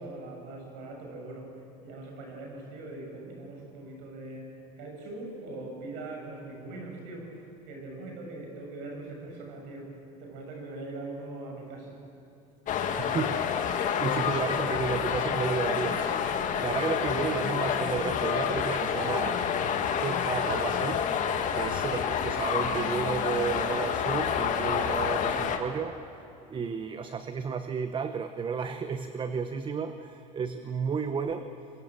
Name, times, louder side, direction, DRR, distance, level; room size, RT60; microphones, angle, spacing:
voice 1, 0.0-12.0, right 2 dB, 75° right, 1 dB, 7.1 m, -41 dB
sound 1, 12.7-25.6, left 7 dB, 45° left, 2.0 m, -28 dB
voice 2, 13.0-19.4 19.9-21.0 21.5-26.0 26.5-31.5, right 6 dB, 25° right, 9 dB, 1.0 m, -32 dB
23.5 x 22.0 x 7.6 m, 2.9 s
supercardioid pair, 115°, 18 cm